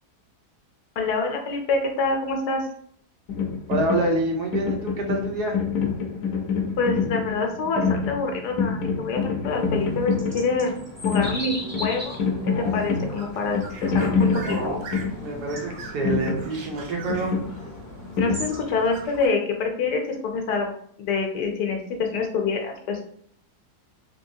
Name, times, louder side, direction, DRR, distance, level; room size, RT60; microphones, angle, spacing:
voice 1, 1.0-2.6 6.8-10.7 11.0-12.2 12.6-14.6 18.2-20.7 21.0-23.0, left 4 dB, 85° left, 3 dB, 1.3 m, -26 dB
sound 1, 3.3-19.0, left 5 dB, 65° left, 0.9 m, -27 dB
voice 2, 3.7-5.6 15.2-17.4, right 2 dB, 80° right, 2 dB, 1.4 m, -26 dB
sound 2, 9.5-19.1, equal, 25° right, 0.3 m, -38 dB
sound 3, 12.0-19.3, right 3 dB, 65° right, 1.0 m, -43 dB
3.4 x 3.0 x 2.6 m, 0.63 s
omnidirectional pair, 1.7 m